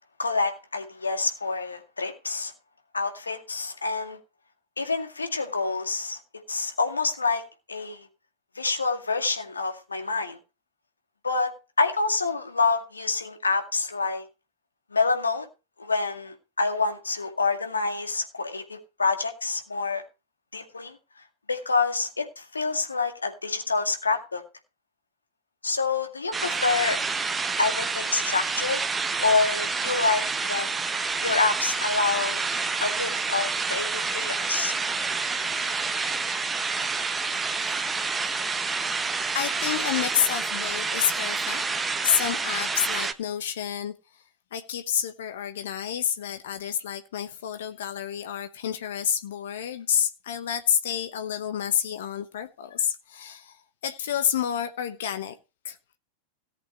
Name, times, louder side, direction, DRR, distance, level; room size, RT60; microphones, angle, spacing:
voice 1, 0.2-2.5 2.9-4.2 4.8-6.2 6.5-8.1 8.6-10.4 11.2-14.2 14.9-15.5 15.8-20.0 20.5-21.0 21.5-24.4 25.6-27.0 27.6-28.8 29.2-30.8 31.2-32.4 32.8-34.7, left 4 dB, 75° left, 2.0 m, -27 dB
sound 1, 26.3-43.1, right 4 dB, 15° right, 1.0 m, -28 dB
voice 2, 39.3-43.9 44.5-53.6 53.8-55.3 55.6-55.8, left 9 dB, 60° left, 1.1 m, -29 dB
17.5 x 8.2 x 3.0 m
figure-of-eight pair, 90°, 0 cm